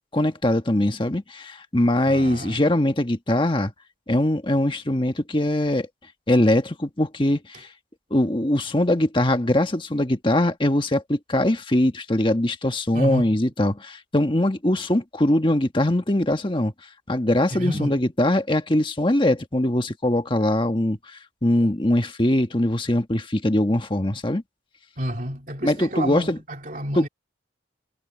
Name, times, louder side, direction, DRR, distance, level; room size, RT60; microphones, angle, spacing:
voice 1, 0.1-3.7 4.1-5.9 6.3-7.7 8.1-16.7 17.1-24.4 25.6-26.4 26.9-27.0, left 1 dB, 25° left, 1.4 m, -22 dB
voice 2, 2.1-2.6 7.5-7.6 12.9-13.4 17.5-18.0 25.0-27.1, equal, 45° right, 2.9 m, -30 dB
head